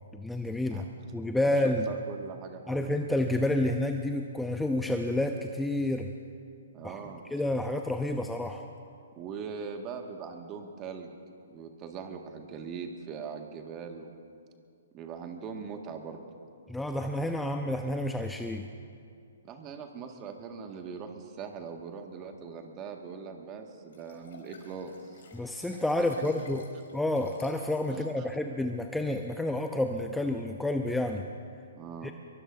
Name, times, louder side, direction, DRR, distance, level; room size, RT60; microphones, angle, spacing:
voice 1, 0.1-0.8 1.1-1.9 2.7-6.1 6.8-7.0 7.3-8.6 16.7-18.7 25.3-26.6 26.9-31.2 32.0-32.1, left 1 dB, 5° left, 4 dB, 0.7 m, -29 dB
voice 2, 1.6-2.9 6.7-7.2 9.1-11.1 11.5-14.2 14.9-16.2 19.4-25.2 26.0-26.6 27.9-28.3 31.7-32.1, right 6 dB, 25° right, 4 dB, 1.8 m, -41 dB
Liquid, 23.9-28.1 28.6-28.7, left 4 dB, 65° left, 4.5 m, -54 dB
23.5 x 23.0 x 2.7 m, 2.4 s
hypercardioid pair, 130°, 0 cm